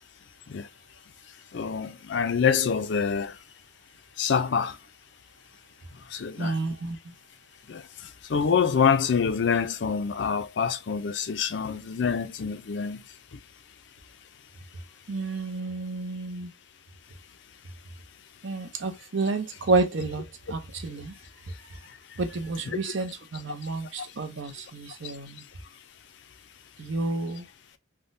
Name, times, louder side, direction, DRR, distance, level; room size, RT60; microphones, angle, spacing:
voice 1, 1.5-3.3 4.2-4.8 6.1-6.5 7.7-7.8 8.3-13.0, left 6 dB, 60° left, 0.4 m, -26 dB
voice 2, 6.4-7.1 15.1-16.5 18.4-21.1 22.2-25.4 26.8-27.5, right 3 dB, 70° right, 0.7 m, -30 dB
3.6 x 2.2 x 2.5 m
head